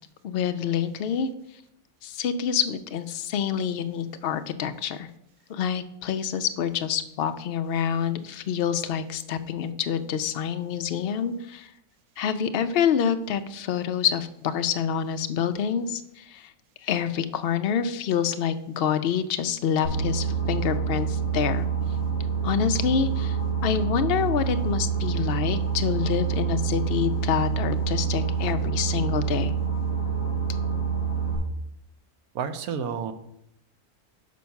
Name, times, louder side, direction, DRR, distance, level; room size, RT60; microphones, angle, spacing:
voice 1, 0.2-1.3 2.0-5.1 5.5-11.7 12.2-16.4 16.8-21.7 22.4-23.4 23.6-29.5, left 8 dB, 80° left, 9 dB, 0.5 m, -27 dB
Boat Water vehicle, 19.8-31.4, right 6 dB, 60° right, 4.0 m, -27 dB
voice 2, 32.3-33.1, right 7 dB, 75° right, 10 dB, 1.1 m, -30 dB
6.3 x 5.3 x 5.7 m, 0.79 s
omnidirectional pair, 1.6 m